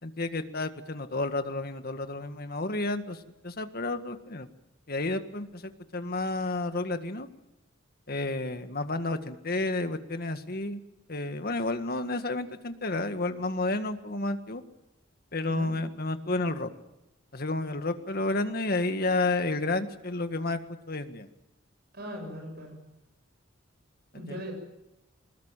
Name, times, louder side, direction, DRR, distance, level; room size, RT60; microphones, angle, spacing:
voice 1, 0.0-4.5 4.9-7.3 8.1-10.8 11.1-14.6 15.3-16.7 17.3-20.6 20.9-21.3 24.3-24.4, left 2 dB, 50° left, 8 dB, 1.8 m, -31 dB
voice 2, 21.9-22.8 24.1-24.5, equal, 55° right, 3 dB, 7.8 m, -39 dB
23.5 x 20.5 x 9.0 m, 0.94 s
head